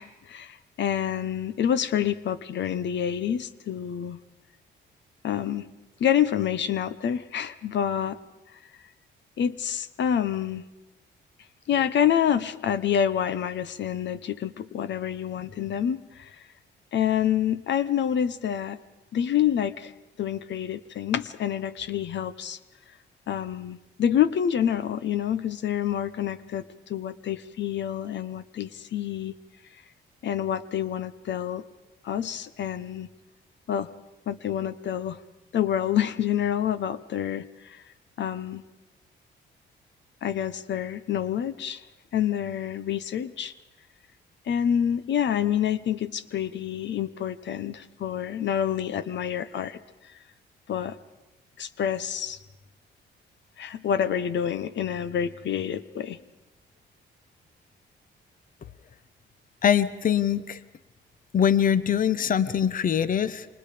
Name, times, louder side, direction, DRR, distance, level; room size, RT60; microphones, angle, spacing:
voice 1, 0.0-4.2 5.2-5.7 6.0-8.2 9.4-10.6 11.7-16.3 16.9-18.8 19.1-19.9 20.2-22.6 23.3-29.3 30.2-31.6 32.0-33.1 33.7-33.9 34.3-35.2 35.5-37.8 38.2-38.6 40.2-41.8 42.1-43.5 44.5-49.8 50.7-50.9 51.6-52.4 53.6-56.2, left 9 dB, 65° left, 14 dB, 1.1 m, -27 dB
voice 2, 59.6-60.6 61.3-63.5, left 8 dB, 45° left, 15 dB, 1.0 m, -23 dB
29.0 x 26.0 x 5.2 m, 1.0 s
cardioid pair, 90°, 20 cm